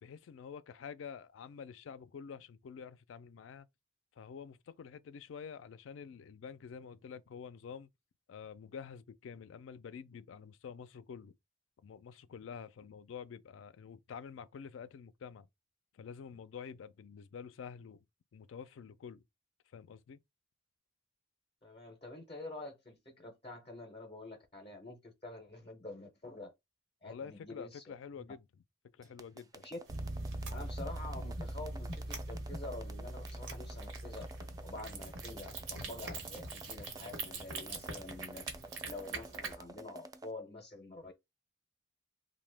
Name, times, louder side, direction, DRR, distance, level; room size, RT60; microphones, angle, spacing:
voice 1, 0.0-3.7 4.2-7.9 8.3-11.3 11.8-15.5 15.9-18.0 18.3-19.2 19.7-20.2 27.0-28.4 28.9-29.7 34.7-34.9, left 6 dB, 75° left, 0.3 m, -48 dB
voice 2, 21.6-26.5 27.0-27.8 29.5-29.8 30.5-34.3 34.6-38.5 38.8-41.1, left 2 dB, 30° left, 0.6 m, -47 dB
sound 1, 29.0-40.3, right 2 dB, 20° right, 0.3 m, -51 dB
sound 2, 29.9-39.6, right 1 dB, 55° right, 0.7 m, -44 dB
sound 3, 29.9-39.5, right 4 dB, 85° right, 1.0 m, -45 dB
2.8 x 2.1 x 3.3 m
head